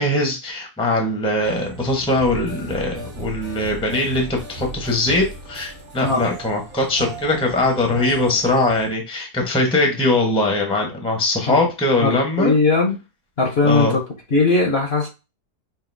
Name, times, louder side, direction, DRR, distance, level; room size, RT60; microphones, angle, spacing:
voice 1, 0.0-12.5 13.6-14.0, left 2 dB, 5° left, 2 dB, 0.8 m, -21 dB
sound 1, 1.4-8.9, right 1 dB, 45° right, 1.5 m, -35 dB
voice 2, 12.0-13.0 13.4-14.0 14.3-15.1, left 3 dB, 45° left, 2 dB, 1.1 m, -19 dB
5.6 x 2.7 x 2.6 m, 0.27 s
omnidirectional pair, 1.8 m